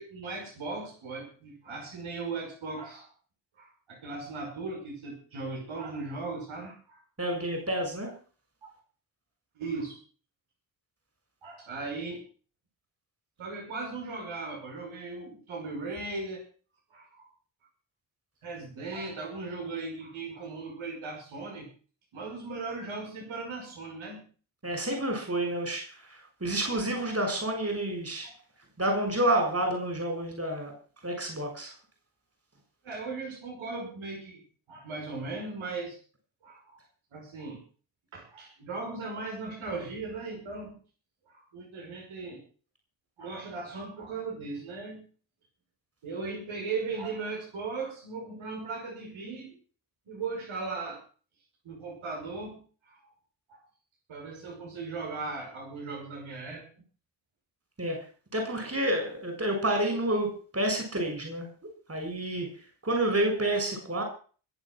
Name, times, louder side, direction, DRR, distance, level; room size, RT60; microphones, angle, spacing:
voice 1, 0.0-3.1 3.5-7.0 8.6-8.7 9.6-10.0 11.4-12.2 13.4-16.4 16.9-17.3 18.4-21.7 22.1-24.3 28.2-28.3 32.8-34.4 34.7-36.0 36.4-36.8 37.1-37.6 38.1-40.8 41.3-42.4 43.2-45.0 46.0-49.5 50.1-51.0 51.6-53.1 53.5-53.6 54.1-56.6, right 3 dB, 75° right, 0 dB, 5.8 m, -38 dB
voice 2, 7.2-8.1 24.6-28.3 28.8-30.7 31.0-31.7 57.8-58.0 58.3-61.5 61.9-62.5 62.8-64.0, right 1 dB, 30° right, 3 dB, 7.0 m, -29 dB
21.0 x 8.0 x 6.2 m, 0.40 s
cardioid pair, 55°, 48 cm